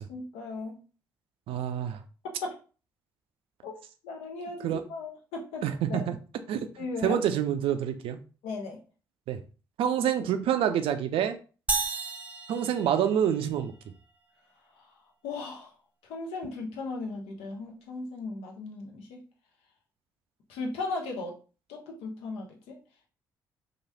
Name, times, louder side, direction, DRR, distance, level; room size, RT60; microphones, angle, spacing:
voice 1, 0.1-0.8 2.4-2.6 3.6-3.7 4.0-6.1 6.8-7.2 8.4-8.8 15.2-15.7 16.1-19.2 20.5-21.3 21.7-22.8, left 3 dB, 65° left, 0.7 m, -36 dB
voice 2, 1.5-2.0 4.6-4.8 5.6-6.2 6.5-6.6 7.0-8.2 9.3-9.4 9.8-11.4 12.5-13.7, right 9 dB, 60° right, 0.4 m, -27 dB
sound 1, 11.7-13.6, right 3 dB, 15° right, 0.7 m, -33 dB
3.0 x 2.4 x 2.8 m
figure-of-eight pair, 45°, 11 cm